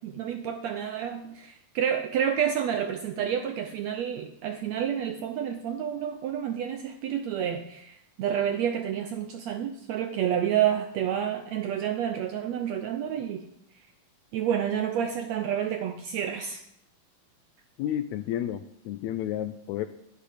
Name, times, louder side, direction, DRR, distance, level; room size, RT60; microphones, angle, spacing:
voice 1, 0.0-13.4 14.3-16.6, right 9 dB, 80° right, 7 dB, 1.6 m, -29 dB
voice 2, 17.8-19.9, left 11 dB, 85° left, 9 dB, 1.6 m, -31 dB
10.5 x 10.5 x 5.0 m, 0.74 s
omnidirectional pair, 3.8 m